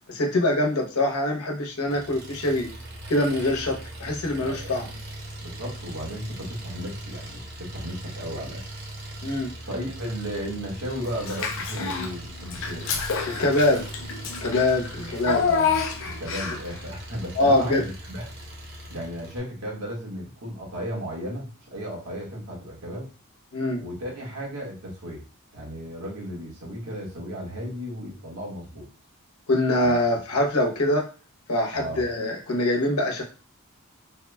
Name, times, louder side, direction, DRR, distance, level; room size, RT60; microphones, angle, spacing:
voice 1, 0.1-2.7 3.1-4.9 9.2-9.5 13.2-13.8 14.4-15.4 17.4-17.8 23.5-23.8 29.5-31.1 31.5-33.2, left 1 dB, 90° left, 0 dB, 0.9 m, -24 dB
Engine, 1.9-19.4, right 1 dB, 50° right, 0.9 m, -40 dB
voice 2, 4.4-4.7 5.4-8.6 9.7-13.0 15.4-18.3 18.9-23.1 23.8-25.2 25.5-28.9 29.8-30.0 31.7-32.0, equal, 90° right, -3 dB, 1.5 m, -35 dB
Child speech kid speaking / Bathtub (filling or washing), 11.2-12.1 12.5-16.7, left 6 dB, 60° left, 0.5 m, -28 dB
3.4 x 2.2 x 3.4 m, 0.36 s
head